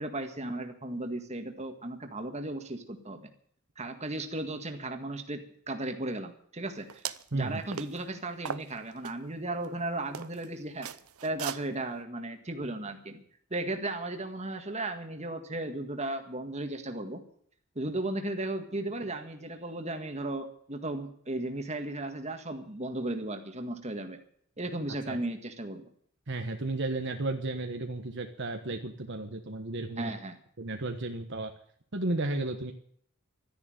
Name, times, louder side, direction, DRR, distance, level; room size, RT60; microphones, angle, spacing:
voice 1, 0.0-3.3 3.8-7.0 7.3-10.9 11.2-13.2 13.5-17.2 17.8-24.2 24.6-25.8 30.0-30.4, right 2 dB, 30° right, 5 dB, 1.9 m, -35 dB
sound 1, 6.9-7.3 7.7-8.0 8.5-9.1 9.6-9.7 10.1-10.5 10.8-11.6, right 8 dB, 90° right, 0.8 m, -38 dB
voice 2, 7.3-7.6 25.1-25.2 26.3-30.1 30.6-31.5 31.9-32.7, right 2 dB, 55° right, 4 dB, 1.3 m, -33 dB
13.0 x 10.5 x 9.2 m, 0.62 s
head